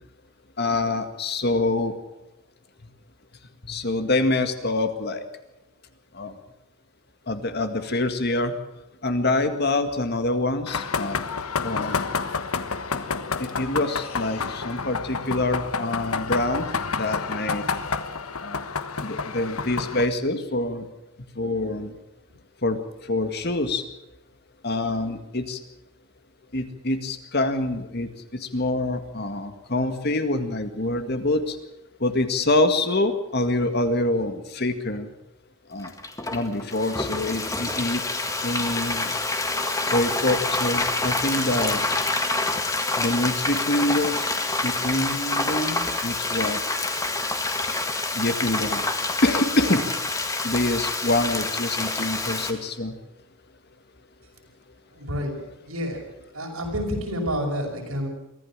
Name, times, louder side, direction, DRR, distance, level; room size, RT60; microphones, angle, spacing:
voice 1, 0.6-1.9 3.6-5.2 6.1-6.3 7.3-8.5 9.0-11.2 11.6-12.1 13.4-16.7 16.9-17.6 18.4-18.6 19.0-20.9 21.4-21.9 22.6-22.8 23.1-23.8 24.6-25.6 26.5-28.1 28.4-31.6 32.0-35.1 35.7-35.9 36.3-38.0 38.4-39.1 39.8-41.9 43.0-44.3 44.6-46.6 48.1-48.9 49.2-49.8 50.4-52.9, left 2 dB, 45° left, 8 dB, 1.9 m, -25 dB
sound 1, 10.7-20.1, left 5 dB, 80° left, 1.3 m, -29 dB
Frying (food), 35.8-52.5, left 3 dB, 15° left, 1.8 m, -27 dB
voice 2, 54.9-55.4 55.7-56.0 56.3-58.1, equal, 75° right, 2 dB, 6.0 m, -29 dB
24.0 x 15.0 x 7.5 m, 0.92 s
head